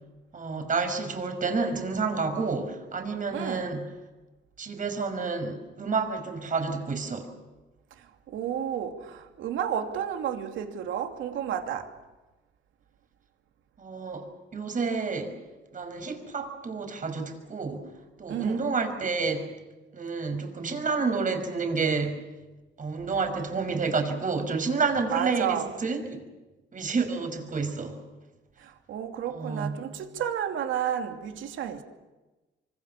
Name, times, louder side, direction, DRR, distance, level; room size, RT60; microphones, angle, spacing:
voice 1, 0.3-3.9 4.6-7.3 13.8-15.3 15.7-17.9 18.2-19.5 19.9-22.2 22.8-26.2 26.7-28.0 29.3-29.8, right 4 dB, 40° right, 5.8 m, -29 dB
voice 2, 3.3-3.7 8.0-11.9 18.3-18.6 23.0-23.1 25.1-25.7 28.6-31.8, right 9 dB, 80° right, 2.6 m, -32 dB
25.5 x 25.0 x 7.2 m
cardioid pair, 90°, 20 cm